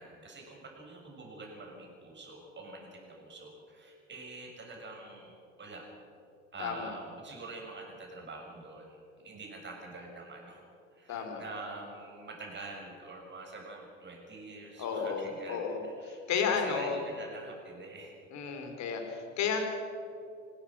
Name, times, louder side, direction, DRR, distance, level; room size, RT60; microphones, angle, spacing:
voice 1, 0.0-5.9 6.5-10.6 10.9-16.2 16.5-18.2, right 3 dB, 30° right, 0 dB, 7.3 m, -46 dB
voice 2, 6.6-6.9 11.1-11.4 14.8-17.0 18.3-19.6, left 6 dB, 45° left, 5 dB, 4.1 m, -33 dB
27.0 x 18.0 x 6.4 m, 2.6 s
figure-of-eight pair, 65°, 38 cm